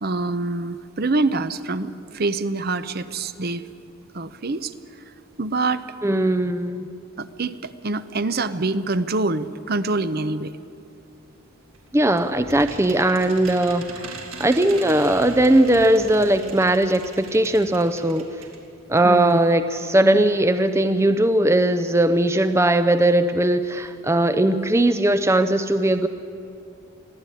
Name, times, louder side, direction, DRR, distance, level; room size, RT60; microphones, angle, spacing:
voice 1, 0.0-3.7 4.1-4.7 5.4-5.9 7.2-10.5 19.0-19.4, right 3 dB, 45° right, 12 dB, 0.7 m, -25 dB
voice 2, 6.0-6.8 11.9-18.3 18.9-26.1, right 1 dB, 10° right, 10 dB, 0.6 m, -19 dB
sound 1, 11.7-18.6 19.0-19.1 19.3-19.4, right 3 dB, 75° right, 3.4 m, -40 dB
24.0 x 15.5 x 9.9 m, 2.6 s
head